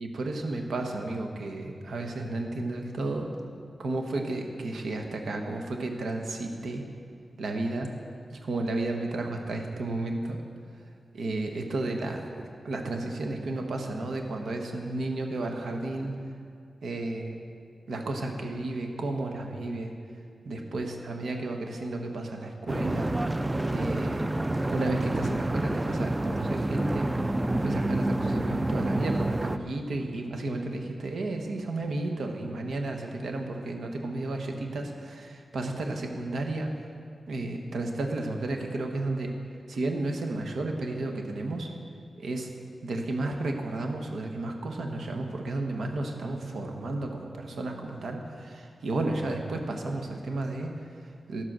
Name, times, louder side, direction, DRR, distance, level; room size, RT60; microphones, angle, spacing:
voice 1, 0.0-3.3 3.8-6.9 7.4-7.9 8.3-10.4 10.7-10.9 11.1-16.2 16.8-17.3 17.9-19.9 20.4-23.1 23.7-24.3 24.7-36.7 37.3-39.3 39.7-41.7 42.2-42.5 42.8-51.4, right 2 dB, 85° right, 3 dB, 1.0 m, -32 dB
sound 1, 22.7-29.6, right 1 dB, 15° right, 0.3 m, -28 dB
11.5 x 7.6 x 6.1 m, 2.2 s
wide cardioid pair, 155°, 0 cm